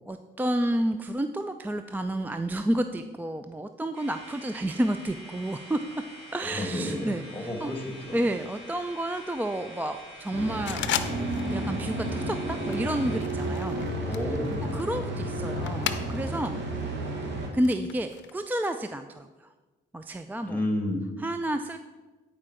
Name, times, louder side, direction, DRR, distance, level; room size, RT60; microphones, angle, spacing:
voice 1, 0.1-5.8 6.3-7.7 8.1-10.8 11.5-14.4 14.7-16.6 17.2-19.5 19.9-20.6 21.2-21.8, right 1 dB, 10° right, 8 dB, 0.3 m, -30 dB
sound 1, 3.9-13.2, equal, 85° right, 2.8 m, -46 dB
voice 2, 6.5-8.2 14.1-14.9 20.4-21.0, left 1 dB, 10° left, 2 dB, 2.1 m, -31 dB
sound 2, 10.3-17.5, right 1 dB, 65° right, 1.6 m, -32 dB
sound 3, 10.7-11.6 11.8-12.2 12.7-16.5 16.8-18.3, left 10 dB, 70° left, 0.6 m, -36 dB
9.7 x 4.7 x 4.9 m, 1.2 s
cardioid pair, 90°, 20 cm